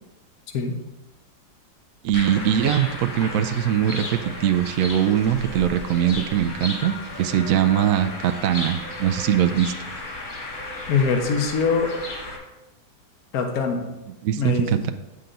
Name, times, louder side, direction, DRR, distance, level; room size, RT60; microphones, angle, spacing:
voice 1, 2.0-9.7 14.2-14.9, right 10 dB, 70° right, 7 dB, 0.8 m, -22 dB
sound 1, 2.1-12.4, left 2 dB, 30° left, 1.2 m, -34 dB
voice 2, 10.9-11.9 13.3-13.9 14.4-14.9, left 5 dB, 65° left, 4 dB, 1.4 m, -23 dB
8.7 x 6.7 x 3.9 m, 1.0 s
omnidirectional pair, 1.8 m